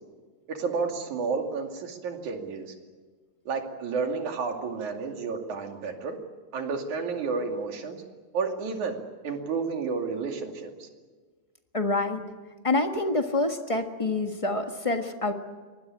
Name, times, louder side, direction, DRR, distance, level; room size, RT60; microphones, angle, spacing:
voice 1, 0.5-2.7 3.5-6.2 6.5-8.0 8.3-9.0 9.2-10.9, right 4 dB, 90° right, 3 dB, 4.0 m, -31 dB
voice 2, 11.7-12.2 12.6-15.3, left 2 dB, 30° left, 5 dB, 0.5 m, -27 dB
24.5 x 20.5 x 9.8 m, 1.4 s
omnidirectional pair, 3.3 m